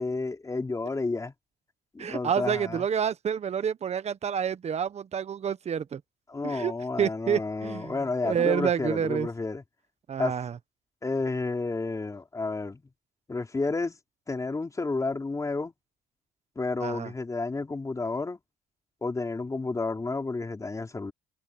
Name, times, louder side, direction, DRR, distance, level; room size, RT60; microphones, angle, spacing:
voice 1, 0.0-1.3 1.9-2.8 6.3-9.6 10.2-10.3 11.0-12.8 13.3-14.0 14.3-15.7 16.6-18.4 19.0-21.1, left 3 dB, 20° left, 3.9 m, -31 dB
voice 2, 2.0-6.0 6.4-6.7 7.0-8.0 8.2-9.3 10.1-10.6 16.8-17.1, right 8 dB, 40° right, 1.2 m, -28 dB
cardioid pair, 110°, 17 cm